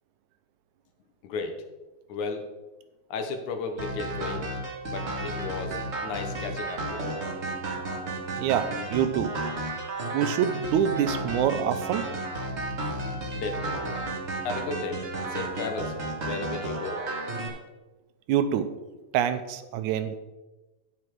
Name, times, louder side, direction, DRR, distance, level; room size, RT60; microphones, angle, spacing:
voice 1, 1.2-1.6 2.1-2.5 3.1-4.5 4.9-7.2 7.5-7.6 13.3-13.9 14.4-16.0 16.2-17.1, left 4 dB, 80° left, 6 dB, 2.5 m, -34 dB
sound 1, 3.8-17.5, right 2 dB, 50° right, 0.8 m, -33 dB
voice 2, 8.4-9.3 10.1-12.1 18.3-18.7 19.1-20.2, right 9 dB, 80° right, 10 dB, 2.0 m, -26 dB
9.9 x 6.9 x 4.6 m, 1.1 s
omnidirectional pair, 3.5 m